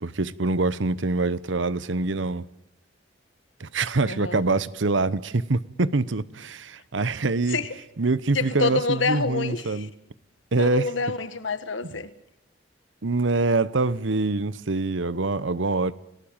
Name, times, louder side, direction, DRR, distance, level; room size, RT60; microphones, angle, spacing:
voice 1, 0.0-2.5 3.6-7.6 8.0-9.9 10.5-10.9 13.0-15.9, right 3 dB, 80° right, 0.9 m, -25 dB
voice 2, 4.0-4.4 7.5-7.7 8.3-9.9 10.6-12.1, left 4 dB, 85° left, 1.6 m, -27 dB
29.0 x 18.5 x 8.9 m
head